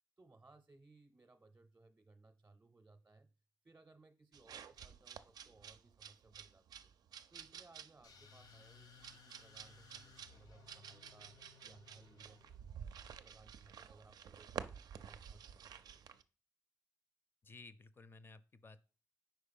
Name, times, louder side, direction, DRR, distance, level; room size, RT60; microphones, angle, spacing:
voice 1, 0.2-3.3 3.6-6.9 7.3-11.4 11.6-12.4 13.0-14.7 15.0-16.0, right 3 dB, 30° right, 6 dB, 0.6 m, -64 dB
sound 1, 4.3-16.2, right 8 dB, 75° right, 0.4 m, -52 dB
sound 2, 8.0-12.8, left 5 dB, 80° left, 1.1 m, -62 dB
voice 2, 17.4-18.8, left 3 dB, 35° left, 13 dB, 0.5 m, -56 dB
4.6 x 4.6 x 5.3 m, 0.37 s
cardioid pair, 95°, 7 cm